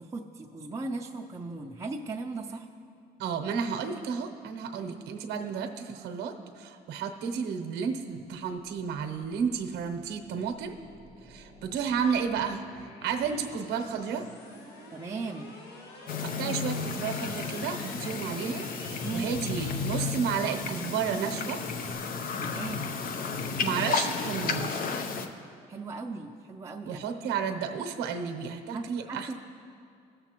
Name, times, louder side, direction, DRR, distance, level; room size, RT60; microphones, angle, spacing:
voice 1, 0.0-2.7 14.9-15.5 19.0-19.3 22.4-23.0 25.7-27.1 28.7-29.3, right 3 dB, 20° right, 0 dB, 0.5 m, -37 dB
voice 2, 3.2-10.7 11.3-14.3 16.2-21.6 23.6-24.8 26.8-29.3, right 6 dB, 85° right, 6 dB, 0.8 m, -32 dB
sound 1, 8.6-22.0, left 2 dB, 75° left, 1.6 m, -50 dB
sound 2, 16.1-25.3, left 5 dB, 55° left, 0.7 m, -33 dB
17.5 x 7.0 x 2.9 m, 2.3 s
cardioid pair, 110°, 17 cm